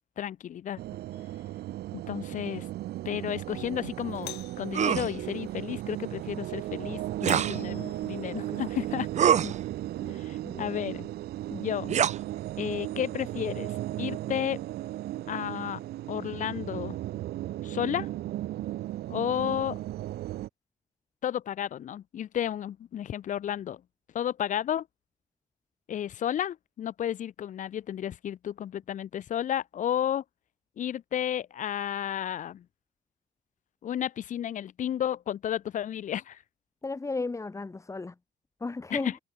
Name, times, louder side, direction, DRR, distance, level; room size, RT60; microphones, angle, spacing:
voice 1, 0.2-0.8 1.9-2.7 3.0-9.1 10.1-11.0 11.5-12.0 12.6-14.6 15.3-15.8 16.1-17.0 17.6-18.1 19.1-19.8 21.2-23.8 24.1-24.9 25.9-30.2 30.8-32.6 33.8-36.4 38.9-39.0, left 10 dB, 50° left, 0.9 m, -32 dB
sound 1, 0.8-20.5, right 14 dB, 70° right, 1.7 m, -36 dB
Doorbell, 1.1-1.6 4.1-4.7 7.2-8.4, left 17 dB, 80° left, 2.0 m, -45 dB
sound 2, 4.7-5.1 7.2-7.6 9.1-9.6 11.9-12.2, right 9 dB, 45° right, 0.9 m, -24 dB
voice 2, 9.3-9.6 10.0-11.1 36.8-38.2 38.6-39.2, left 3 dB, 15° left, 2.5 m, -36 dB
cardioid pair, 110°, 17 cm